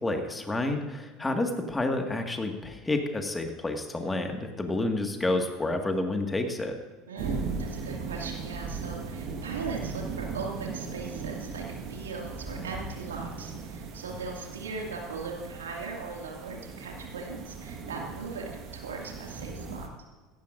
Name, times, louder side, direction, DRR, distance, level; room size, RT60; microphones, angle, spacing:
voice 1, 0.0-6.8, left 2 dB, 15° left, 4 dB, 1.9 m, -29 dB
voice 2, 7.1-19.9, right 4 dB, 80° right, 0 dB, 2.4 m, -39 dB
sound 1, 7.2-19.9, right 4 dB, 50° right, 1.6 m, -38 dB
17.0 x 15.5 x 2.7 m, 1.3 s
figure-of-eight pair, 75°, 0 cm